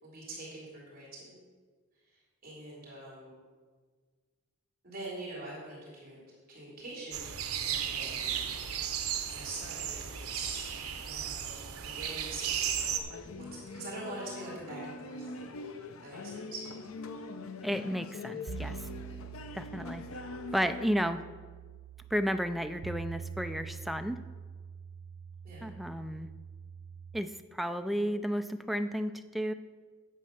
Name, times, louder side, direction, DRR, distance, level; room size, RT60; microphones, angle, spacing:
voice 1, 0.0-1.4 2.1-3.4 4.8-6.2 6.5-8.4 9.3-10.7 11.0-12.8 13.4-16.6 19.1-19.2 25.4-25.7, right 2 dB, 45° right, -5 dB, 3.1 m, -44 dB
sound 1, 7.1-13.0, right 8 dB, 85° right, 0.9 m, -35 dB
sound 2, 12.8-20.9, left 3 dB, 70° left, 0.7 m, -43 dB
voice 2, 17.6-18.8 19.5-20.0 20.5-21.2 22.1-24.2 25.6-26.3 27.1-29.5, equal, ahead, 9 dB, 0.4 m, -32 dB
sound 3, 18.5-27.2, right 7 dB, 60° right, 0.5 m, -45 dB
9.3 x 7.6 x 5.8 m, 1.5 s
head